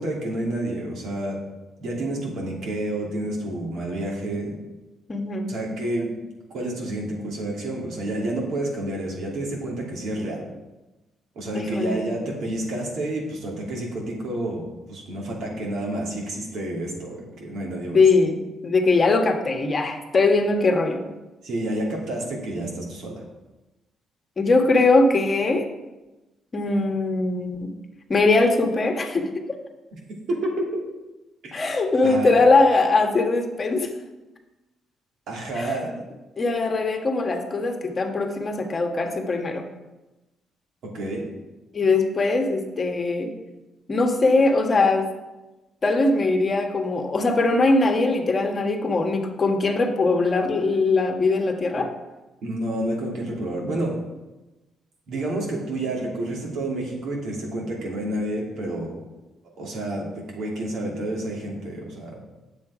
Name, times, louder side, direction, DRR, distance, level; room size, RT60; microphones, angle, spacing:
voice 1, 0.0-1.4 1.8-4.6 5.5-6.1 6.5-10.5 11.3-18.0 21.4-23.2 29.9-30.0 30.3-30.6 31.4-31.5 32.0-32.4 35.3-36.0 40.9-41.2 52.4-54.0 55.1-59.0 59.5-60.1 60.3-62.2, right 1 dB, 70° right, -2 dB, 2.9 m, -29 dB
voice 2, 5.1-5.6 11.5-12.1 17.9-21.1 24.4-25.7 26.5-27.7 28.1-29.6 31.5-33.9 35.5-35.8 36.4-39.6 41.7-43.3 43.9-45.1 45.8-51.9, left 3 dB, 35° left, 3 dB, 1.4 m, -21 dB
8.6 x 7.3 x 4.9 m, 1.1 s
cardioid pair, 90°, 0 cm